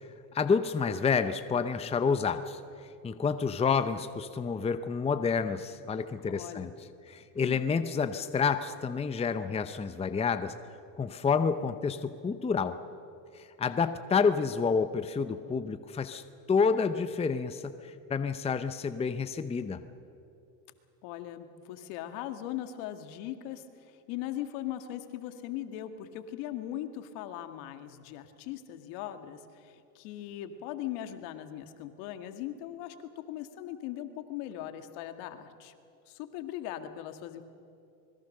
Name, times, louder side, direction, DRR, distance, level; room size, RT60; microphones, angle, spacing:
voice 1, 0.3-2.6 3.0-6.7 7.1-10.5 11.0-12.8 13.3-16.2 16.5-19.8, left 5 dB, 15° left, 10 dB, 0.7 m, -29 dB
voice 2, 6.2-6.7 7.4-7.6 21.0-33.0 33.3-35.7 36.1-37.4, left 12 dB, 70° left, 8 dB, 2.0 m, -39 dB
25.5 x 21.0 x 6.6 m, 2.6 s
supercardioid pair, 115°, 46 cm